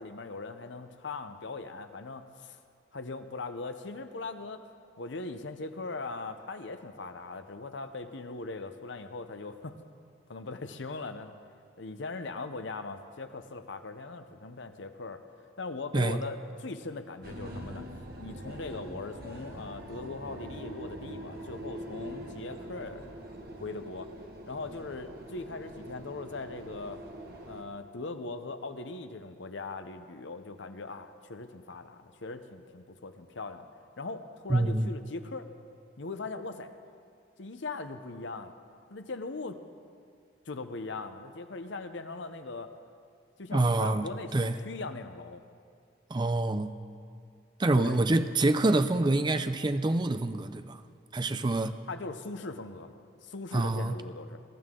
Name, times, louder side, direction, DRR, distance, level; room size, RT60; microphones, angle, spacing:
voice 1, 0.0-2.6 2.9-4.6 5.0-9.8 10.3-11.3 11.8-15.2 15.6-17.9 18.2-23.1 23.6-24.1 24.5-27.0 27.5-33.7 34.0-35.5 36.0-36.7 37.4-38.5 38.9-39.6 40.5-42.7 43.4-45.4 47.6-48.0 51.9-54.4, left 3 dB, 65° left, 9 dB, 0.8 m, -40 dB
sound 1, 17.2-27.6, right 1 dB, 50° right, 1.5 m, -43 dB
voice 2, 34.5-34.9 43.5-44.5 46.1-46.7 47.6-50.8 51.1-51.7 53.5-54.0, right 2 dB, 20° right, 10 dB, 0.4 m, -26 dB
22.0 x 12.5 x 3.8 m, 2.3 s
head